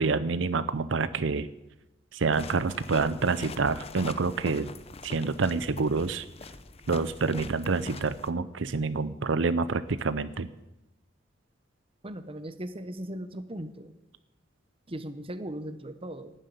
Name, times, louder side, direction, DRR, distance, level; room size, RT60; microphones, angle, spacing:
voice 1, 0.0-1.5 2.1-4.7 5.0-6.3 6.9-10.5, right 4 dB, 80° right, 14 dB, 0.6 m, -27 dB
sound 1, 2.3-8.3, left 3 dB, 35° left, 0.8 m, -43 dB
voice 2, 12.0-13.9 14.9-16.3, right 1 dB, 30° right, 10 dB, 1.0 m, -38 dB
12.0 x 7.5 x 9.9 m, 0.97 s
head